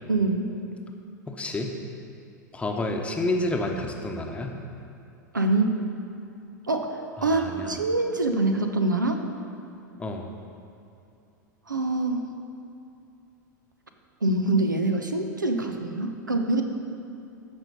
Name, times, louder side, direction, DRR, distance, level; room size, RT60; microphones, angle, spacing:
voice 1, 0.1-0.5 5.3-5.8 6.7-9.2 11.7-12.3 14.2-16.6, right 2 dB, 80° right, 5 dB, 0.8 m, -25 dB
voice 2, 1.3-1.7 2.5-4.6 7.2-7.8 10.0-10.3, left 2 dB, 10° left, 3 dB, 0.9 m, -29 dB
14.0 x 5.5 x 5.3 m, 2.6 s
figure-of-eight pair, 85°, 10 cm